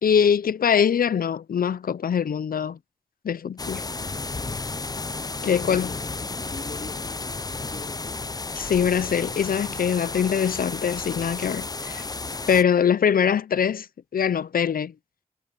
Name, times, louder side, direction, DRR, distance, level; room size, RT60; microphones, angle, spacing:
voice 1, 0.0-2.8 3.2-3.8 5.4-5.9 8.6-12.0 12.5-13.9 14.1-14.9, left 7 dB, 80° left, 0.5 m, -23 dB
sound 1, 3.6-12.6, left 3 dB, 25° left, 0.5 m, -33 dB
voice 2, 5.4-8.2, left 3 dB, 50° left, 3.3 m, -43 dB
cardioid pair, 55°, 15 cm